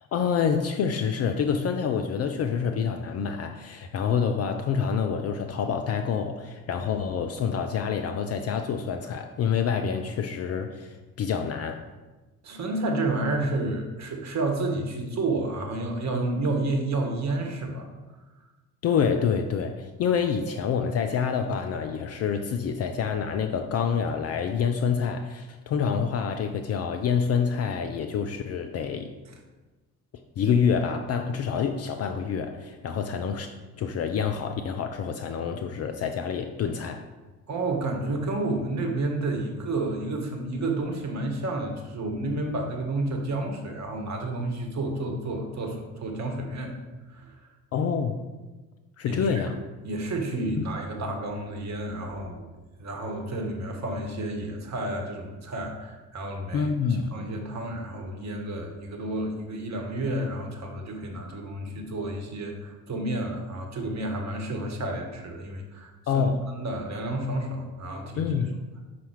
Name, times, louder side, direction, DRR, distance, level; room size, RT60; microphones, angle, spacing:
voice 1, 0.1-11.8 18.8-29.1 30.4-37.0 47.7-48.2 49.0-49.5 50.6-50.7 56.5-57.2 66.1-66.4 68.2-68.6, left 6 dB, 35° left, 6 dB, 0.4 m, -27 dB
voice 2, 12.4-17.9 37.5-46.7 47.1-47.3 49.0-49.2 49.8-52.5 52.8-56.7 57.1-66.2 66.6-68.3, right 2 dB, 35° right, 3 dB, 1.3 m, -30 dB
5.5 x 4.2 x 4.6 m, 1.2 s
figure-of-eight pair, 50°, 46 cm